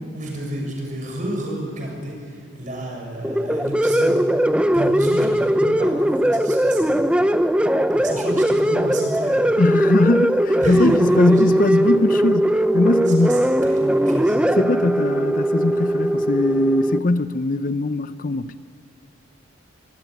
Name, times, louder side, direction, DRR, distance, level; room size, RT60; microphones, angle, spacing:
voice 1, 0.1-4.2 4.7-6.9 7.9-9.4 10.6-11.9 13.2-14.4, right 1 dB, 40° right, 7.0 m, -30 dB
sound 1, 3.2-17.0, right 1 dB, 5° right, 0.6 m, -19 dB
voice 2, 9.6-13.4 14.6-18.6, left 2 dB, 45° left, 0.6 m, -20 dB
25.0 x 16.5 x 9.9 m
head